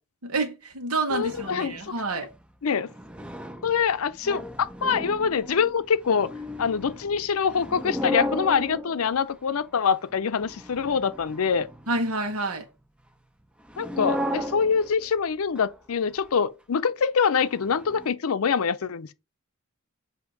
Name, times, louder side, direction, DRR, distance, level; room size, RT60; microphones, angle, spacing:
voice 1, 0.2-2.3 11.9-12.6, right 3 dB, 90° right, 1.2 m, -28 dB
voice 2, 1.1-2.0 2.6-2.9 3.6-6.3 6.6-11.7 13.8-19.1, left 6 dB, 75° left, 0.5 m, -25 dB
sound 1, 1.1-1.9 2.3-2.4 2.7-9.5 10.1-12.1 13.7-15.1 15.6-15.7 16.2-16.3 17.4-18.1, left 1 dB, 5° right, 0.4 m, -35 dB
7.8 x 2.8 x 5.1 m
head